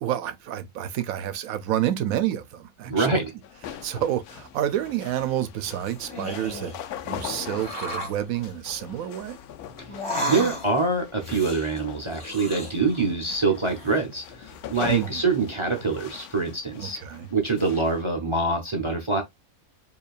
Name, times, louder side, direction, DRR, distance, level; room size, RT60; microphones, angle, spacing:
voice 1, 0.0-3.2 3.7-6.7 7.1-9.4 14.9-15.3 16.8-17.3, right 11 dB, 75° right, 1.0 m, -29 dB
voice 2, 2.9-3.3 10.3-17.0 17.3-19.2, right 3 dB, 35° right, 0.5 m, -25 dB
sound 1, 3.4-18.0, left 10 dB, 90° left, 1.1 m, -41 dB
sound 2, 5.6-6.8 7.5-8.2 9.9-10.8 11.2-13.1 13.4-14.0, equal, 20° left, 1.7 m, -34 dB
4.7 x 2.8 x 2.3 m
omnidirectional pair, 1.5 m